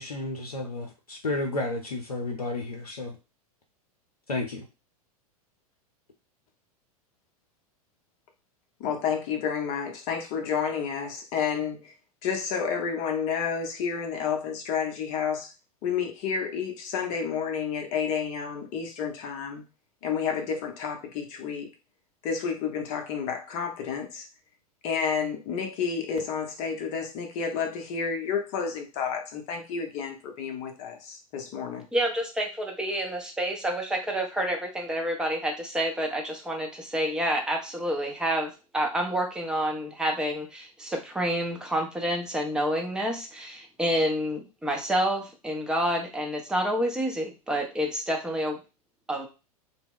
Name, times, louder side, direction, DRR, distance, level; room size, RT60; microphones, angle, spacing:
voice 1, 0.0-3.2 4.3-4.7, left 2 dB, 85° left, 0.5 m, -32 dB
voice 2, 8.8-11.9 12.2-15.5 15.8-19.6 20.0-21.7 22.2-24.3 24.8-31.9, left 6 dB, 40° left, 0.7 m, -30 dB
voice 3, 31.9-48.6 49.1-49.3, equal, 5° right, 0.6 m, -28 dB
2.2 x 2.0 x 3.5 m
figure-of-eight pair, 90°, 19 cm